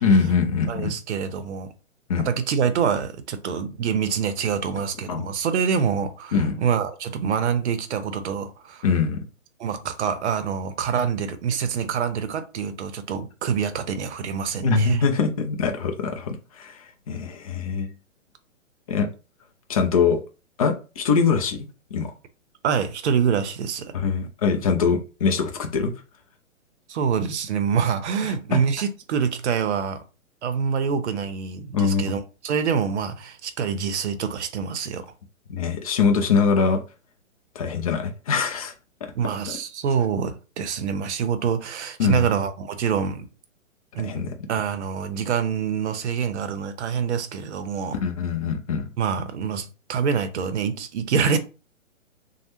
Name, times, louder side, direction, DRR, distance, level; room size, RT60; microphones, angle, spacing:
voice 1, 0.0-0.9 2.1-2.3 5.1-5.3 6.3-6.6 8.8-9.2 14.6-17.9 18.9-19.1 19.7-20.2 20.6-21.6 21.9-22.1 23.9-25.9 28.5-28.6 31.7-32.0 35.5-36.8 37.6-38.7 42.0-42.2 44.0-44.3 48.0-48.9, left 5 dB, 30° left, 0.4 m, -22 dB
voice 2, 0.7-1.7 2.2-8.8 9.6-15.0 22.6-23.9 26.9-30.0 30.4-35.0 39.2-43.3 43.9-44.2 44.5-48.0 49.0-51.4, right 7 dB, 60° right, 0.7 m, -26 dB
3.2 x 2.1 x 2.9 m
hypercardioid pair, 140°, 39 cm